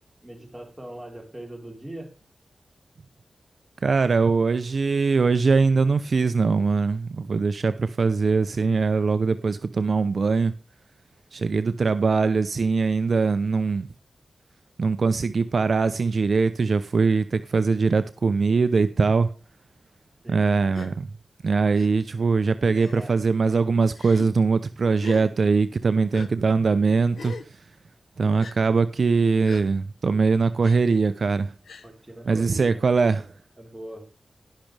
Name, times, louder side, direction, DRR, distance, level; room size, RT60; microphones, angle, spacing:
voice 1, 0.2-2.1 20.2-20.5 22.9-23.1 31.8-32.9 33.6-34.1, right 1 dB, 20° right, 4.0 m, -40 dB
voice 2, 3.8-10.6 11.3-13.9 14.8-19.3 20.3-21.1 21.4-27.6 28.2-31.5 32.3-33.3, right 4 dB, 70° right, 0.6 m, -22 dB
Gasp, 20.7-20.9 21.8-21.9 22.7-23.1 23.9-24.3 25.0-25.3 26.1-26.3 27.1-27.5 28.4-28.6 29.4-29.6 30.6-30.8 31.6-31.9, left 5 dB, 90° left, 0.9 m, -40 dB
19.5 x 6.5 x 3.3 m
cardioid pair, 55°, 0 cm